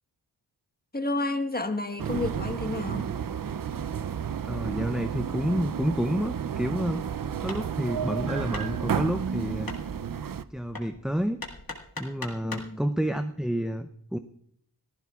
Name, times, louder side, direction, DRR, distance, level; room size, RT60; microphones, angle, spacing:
voice 1, 0.9-3.1 12.4-12.8, left 2 dB, 20° left, 1.3 m, -30 dB
sound 1, 2.0-10.4, right 8 dB, 50° right, 0.5 m, -32 dB
voice 2, 4.4-7.0 7.4-9.7 10.5-11.4 12.0-14.2, equal, ahead, 0.5 m, -29 dB
Hammer, 7.5-12.8, left 3 dB, 50° left, 2.0 m, -43 dB
26.5 x 14.5 x 2.4 m
cardioid pair, 45°, 44 cm